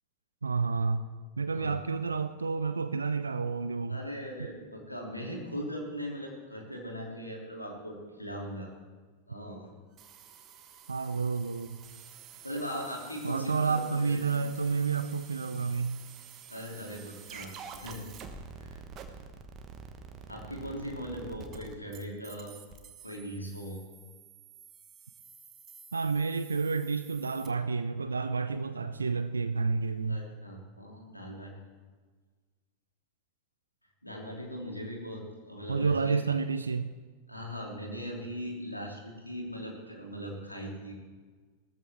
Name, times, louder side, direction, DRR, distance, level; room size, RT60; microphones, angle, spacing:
voice 1, 0.4-1.1 1.4-4.0 10.9-11.8 13.2-16.0 25.9-30.2 35.7-36.9, right 4 dB, 75° right, 11 dB, 0.5 m, -30 dB
voice 2, 3.9-8.7 9.3-9.7 12.4-14.2 16.5-18.1 18.6-18.8 20.3-22.5 23.0-23.8 30.1-31.5 34.0-36.2 37.3-40.9, equal, 90° left, -1 dB, 2.9 m, -39 dB
sound 1, 10.0-27.5, right 6 dB, 30° right, 1.3 m, -49 dB
18.0 x 14.0 x 3.6 m, 1.4 s
figure-of-eight pair, 90°, 0 cm